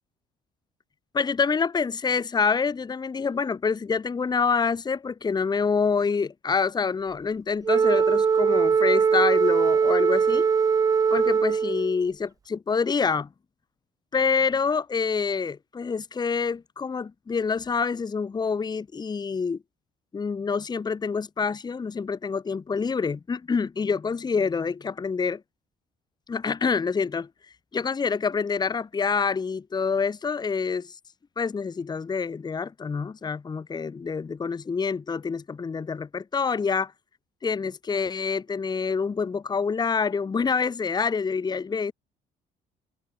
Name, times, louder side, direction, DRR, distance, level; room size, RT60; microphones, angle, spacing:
voice 1, 1.1-10.5 11.1-13.3 14.1-19.6 20.1-25.4 26.3-27.3 27.7-30.9 31.4-36.9 37.4-41.9, left 5 dB, 25° left, 1.2 m, -27 dB
Wind instrument woodwind instrument, 7.6-12.0, right 6 dB, 20° right, 0.3 m, -21 dB
cardioid pair, 110°, 17 cm